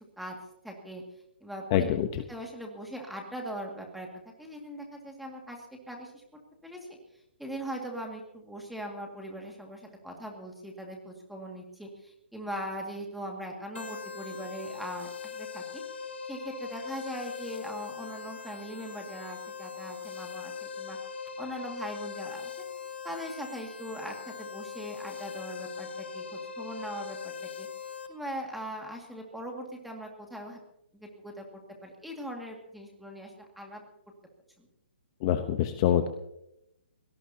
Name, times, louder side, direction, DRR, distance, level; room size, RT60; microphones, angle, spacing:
voice 1, 0.6-1.0 1.4-1.8 2.3-4.1 4.4-6.2 6.6-7.0 7.4-15.8 16.3-21.0 21.4-22.5 23.0-27.7 28.1-30.6 30.9-33.8 34.6-34.7, equal, ahead, 1 dB, 2.1 m, -40 dB
voice 2, 1.7-2.1 35.2-36.1, left 11 dB, 30° left, 8 dB, 0.9 m, -25 dB
sound 1, 13.7-28.1, left 6 dB, 90° left, 4.9 m, -41 dB
24.5 x 18.0 x 2.8 m, 0.82 s
hypercardioid pair, 165°, 6 cm